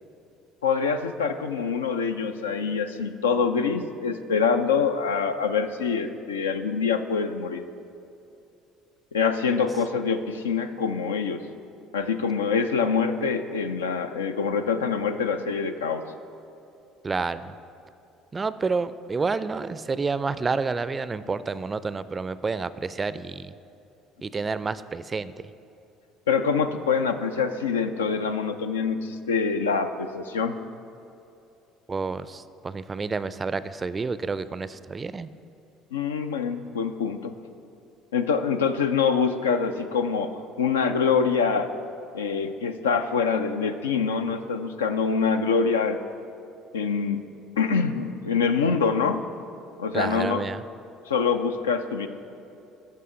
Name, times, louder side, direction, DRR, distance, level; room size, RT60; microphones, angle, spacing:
voice 1, 0.6-7.6 9.1-11.4 11.9-16.0 26.3-30.5 35.9-37.3 38.1-40.3 40.6-41.7 42.1-46.0 46.7-47.3 47.6-49.2 49.8-50.5 51.1-52.1, left 5 dB, 85° left, 8 dB, 0.4 m, -25 dB
voice 2, 17.0-17.5 18.3-23.5 24.2-25.3 31.9-35.3 49.9-50.6, right 4 dB, 30° right, 15 dB, 0.3 m, -29 dB
13.5 x 5.5 x 3.7 m, 2.8 s
hypercardioid pair, 60°, 0 cm